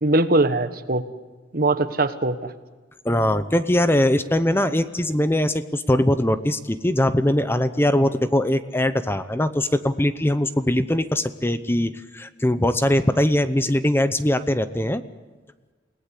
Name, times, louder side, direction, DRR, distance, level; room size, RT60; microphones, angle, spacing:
voice 1, 0.0-1.1 1.5-2.5, right 2 dB, 50° right, 11 dB, 1.4 m, -21 dB
voice 2, 3.0-15.0, left 1 dB, 10° left, 12 dB, 0.7 m, -21 dB
29.0 x 18.5 x 8.3 m, 1.3 s
head